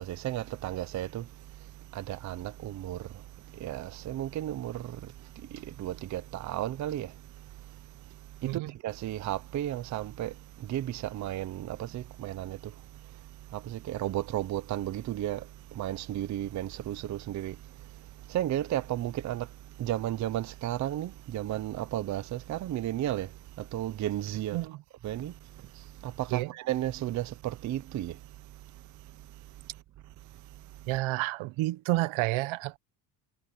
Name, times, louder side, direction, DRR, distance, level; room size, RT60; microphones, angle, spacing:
voice 1, 0.0-24.7 25.0-31.0, right 13 dB, 35° right, 0.7 m, -35 dB
voice 2, 30.9-32.8, right 18 dB, 75° right, 1.0 m, -29 dB
cardioid pair, 160°, 48 cm